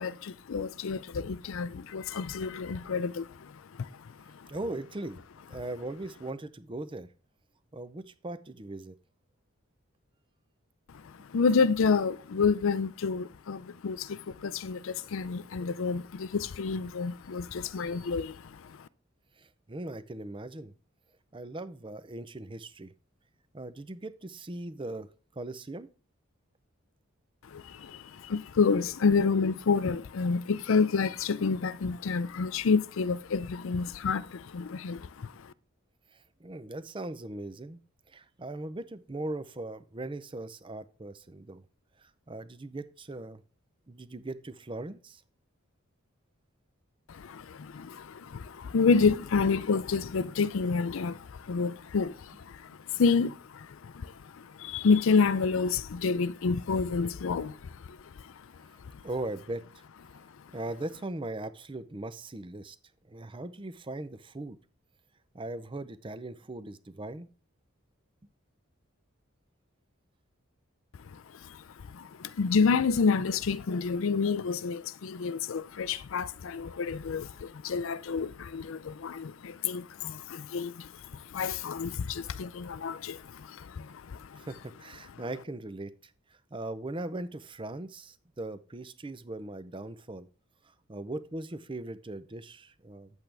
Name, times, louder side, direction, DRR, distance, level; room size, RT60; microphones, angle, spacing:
voice 1, 0.0-4.5 10.9-18.9 27.4-35.5 47.1-58.5 58.9-59.0 71.1-84.5, left 5 dB, 70° left, 0.4 m, -29 dB
voice 2, 4.5-5.2 5.5-7.1 7.7-8.9 19.4-20.7 21.3-22.9 23.5-25.1 25.4-25.9 36.1-37.8 38.1-41.6 42.0-43.4 43.9-45.2 59.0-59.6 60.5-62.8 63.1-64.6 65.3-67.3 84.4-86.1 86.5-90.3 90.9-93.1, right 2 dB, 25° right, 0.5 m, -39 dB
8.8 x 8.2 x 3.3 m
head